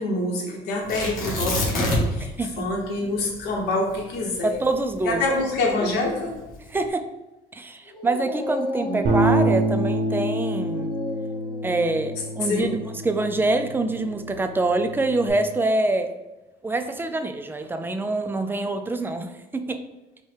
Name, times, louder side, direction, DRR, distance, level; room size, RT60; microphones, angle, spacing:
voice 1, 0.0-2.3 2.6-4.5 5.0-6.4 8.8-9.0 12.4-12.7, left 2 dB, 80° left, 0 dB, 1.1 m, -26 dB
Tearing, 0.9-2.3 2.6-2.7 3.2-5.6 6.3-6.7, left 1 dB, 50° left, 1.5 m, -26 dB
voice 2, 2.4-2.7 4.4-5.2 6.7-7.0 7.5-10.9 11.6-12.7 13.0-16.1 16.6-19.8, right 2 dB, 10° right, 7 dB, 0.3 m, -25 dB
Dog, 7.9-14.5, equal, 25° left, 0.7 m, -36 dB
Bass guitar, 9.0-15.3, right 1 dB, 75° right, 0.9 m, -27 dB
5.4 x 2.2 x 3.3 m, 1.1 s
cardioid pair, 110°, 17 cm